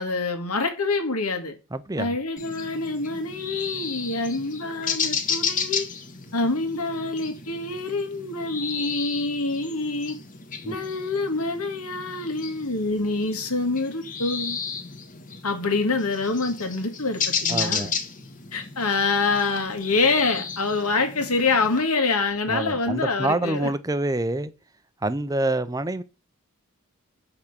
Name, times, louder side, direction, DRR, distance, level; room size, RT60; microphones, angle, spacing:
voice 1, 0.0-1.5 2.0-5.9 6.3-10.2 10.6-14.6 15.4-17.9 18.5-23.7, left 3 dB, 80° left, 2.2 m, -26 dB
voice 2, 1.7-2.2 10.6-10.8 17.5-17.9 22.5-24.5 25.0-26.0, right 2 dB, 15° right, 0.6 m, -26 dB
sound 1, 2.4-21.8, left 6 dB, 35° left, 1.3 m, -33 dB
7.8 x 5.9 x 6.7 m
head